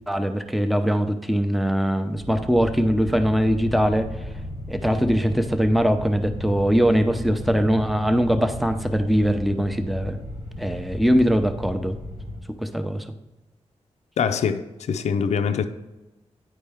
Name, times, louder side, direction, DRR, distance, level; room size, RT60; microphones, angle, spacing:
voice 1, 0.1-4.1 4.7-10.2 10.6-12.0 12.6-13.0, equal, ahead, 0.6 m, -21 dB
sound 1, 2.1-12.4, left 1 dB, 90° right, 2.3 m, -35 dB
voice 2, 14.2-15.7, left 6 dB, 75° left, 0.4 m, -24 dB
9.5 x 4.4 x 3.5 m
cardioid pair, 80°, 12 cm